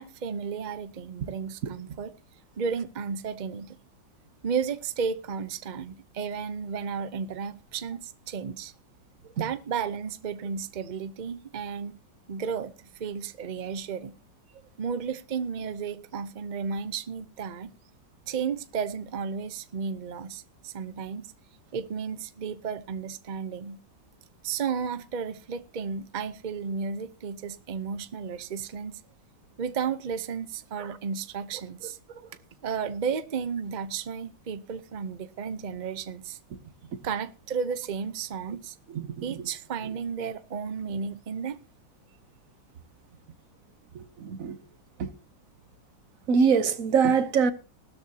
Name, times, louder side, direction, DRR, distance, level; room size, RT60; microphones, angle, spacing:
voice 1, 0.0-2.1 2.6-3.8 4.4-8.7 9.4-12.0 12.3-14.1 14.8-17.7 18.3-21.2 21.7-23.8 24.4-29.0 29.6-32.0 32.6-36.4 37.0-38.8 39.2-41.6, right 6 dB, 75° right, 0.4 m, -33 dB
voice 2, 38.9-39.5 39.8-39.9 43.9-44.6 45.0-45.1 46.3-47.5, right 6 dB, 55° right, 1.2 m, -25 dB
17.0 x 13.0 x 2.8 m
omnidirectional pair, 2.0 m